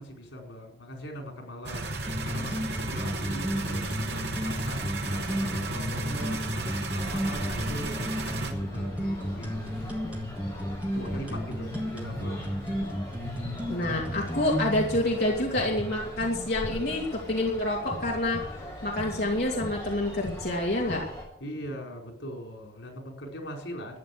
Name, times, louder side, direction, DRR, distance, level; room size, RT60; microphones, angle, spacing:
voice 1, 0.0-9.8 10.9-12.4 21.4-24.0, equal, 90° left, 2 dB, 4.8 m, -41 dB
sound 1, 1.6-8.5, right 2 dB, 65° right, 2.3 m, -33 dB
sound 2, 2.0-14.9, equal, 5° right, 2.8 m, -32 dB
sound 3, 7.0-21.2, equal, 15° left, 6.7 m, -39 dB
voice 2, 13.7-18.4 18.8-21.0, left 1 dB, 55° left, -2 dB, 2.6 m, -27 dB
13.5 x 9.5 x 8.0 m, 0.71 s
head